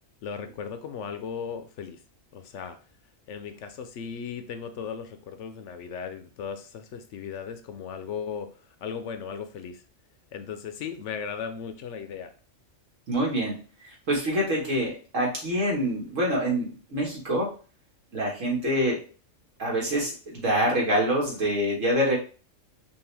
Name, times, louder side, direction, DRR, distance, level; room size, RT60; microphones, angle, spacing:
voice 1, 0.2-2.0 2.3-2.8 3.3-8.5 8.8-9.8 10.3-12.3, left 6 dB, 70° left, 9 dB, 0.9 m, -36 dB
voice 2, 13.1-13.5 13.8-17.5 18.1-19.0 19.6-22.2, equal, 75° right, -2 dB, 1.9 m, -26 dB
5.4 x 2.5 x 3.3 m, 0.37 s
omnidirectional pair, 1.3 m